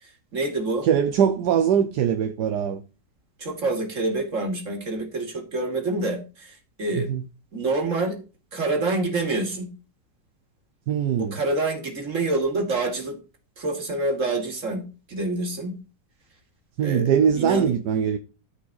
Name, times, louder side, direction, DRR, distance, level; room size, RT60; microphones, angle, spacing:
voice 1, 0.0-0.9 3.4-7.1 7.5-8.2 8.5-9.7 11.2-13.1 13.6-15.7 16.8-17.7, right 2 dB, 45° right, 2.8 m, -27 dB
voice 2, 0.8-2.8 6.9-7.2 10.9-11.4 16.8-18.2, right 8 dB, 70° right, 1.3 m, -22 dB
13.0 x 5.2 x 4.1 m
omnidirectional pair, 1.9 m